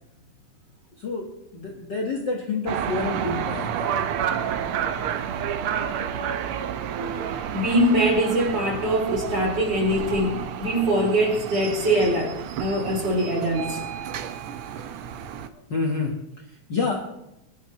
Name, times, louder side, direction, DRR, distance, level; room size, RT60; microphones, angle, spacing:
voice 1, 1.0-1.3 1.5-4.1 15.7-17.0, left 3 dB, 45° left, -1 dB, 1.6 m, -28 dB
sound 1, 2.7-15.5, right 8 dB, 85° right, 1.2 m, -30 dB
voice 2, 7.5-13.8, equal, 35° right, 0 dB, 3.8 m, -23 dB
22.5 x 11.5 x 3.2 m, 0.89 s
omnidirectional pair, 3.5 m